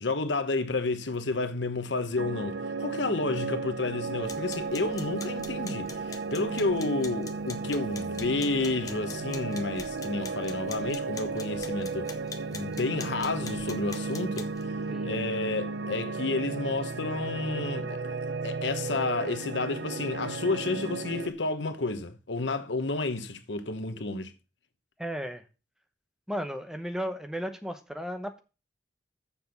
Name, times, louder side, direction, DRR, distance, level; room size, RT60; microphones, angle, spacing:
voice 1, 0.0-12.1 12.5-14.5 15.0-18.2 18.4-24.3, left 3 dB, 90° left, 1.1 m, -31 dB
sound 1, 2.2-21.3, right 4 dB, 80° right, 0.8 m, -34 dB
sound 2, 4.2-14.6, left 4 dB, 20° left, 1.0 m, -45 dB
voice 2, 25.0-25.4 26.3-28.4, equal, 5° right, 0.9 m, -34 dB
7.1 x 6.1 x 6.9 m
head